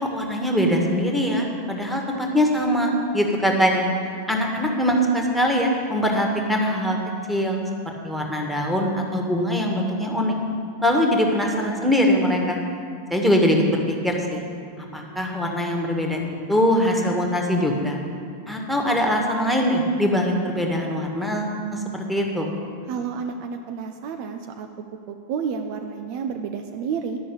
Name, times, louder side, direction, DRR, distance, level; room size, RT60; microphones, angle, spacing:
voice 1, 0.1-3.8 4.3-7.0 7.3-7.6 8.0-10.3 10.8-12.6 13.1-14.4 14.9-18.0 18.5-21.8 22.1-22.5, equal, ahead, 0 dB, 1.6 m, -22 dB
voice 2, 22.9-24.7 25.1-27.2, right 6 dB, 45° right, 5 dB, 0.6 m, -30 dB
10.5 x 6.3 x 8.6 m, 2.3 s
figure-of-eight pair, 90°, 0 cm